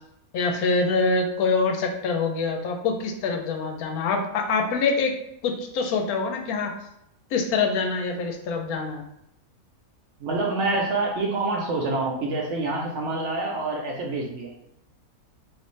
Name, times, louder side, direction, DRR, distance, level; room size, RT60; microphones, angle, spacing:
voice 1, 0.3-5.1 5.4-6.7 7.3-9.0, left 4 dB, 85° left, 3 dB, 1.1 m, -25 dB
voice 2, 10.2-14.5, right 2 dB, 65° right, 0 dB, 0.8 m, -27 dB
3.2 x 2.6 x 3.1 m, 0.80 s
omnidirectional pair, 1.5 m